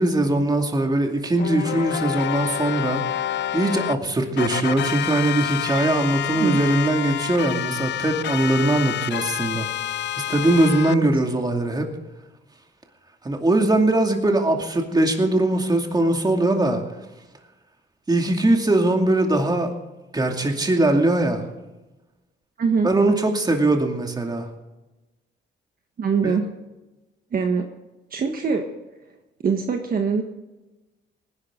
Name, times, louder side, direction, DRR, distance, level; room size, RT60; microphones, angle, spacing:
voice 1, 0.0-3.0 3.5-9.7 10.1-11.9 13.2-16.8 18.1-19.7 20.1-21.5 22.8-24.5 26.2-26.3, right 2 dB, 20° right, 3 dB, 2.5 m, -21 dB
sound 1, 1.4-3.9 4.4-10.9, left 12 dB, 60° left, 0.6 m, -28 dB
voice 2, 10.9-11.2 22.6-22.9 26.0-26.5 27.3-27.6 28.1-28.7 29.4-30.2, right 5 dB, 45° right, 4 dB, 1.5 m, -23 dB
19.0 x 11.0 x 3.9 m, 1.1 s
cardioid pair, 90°, 20 cm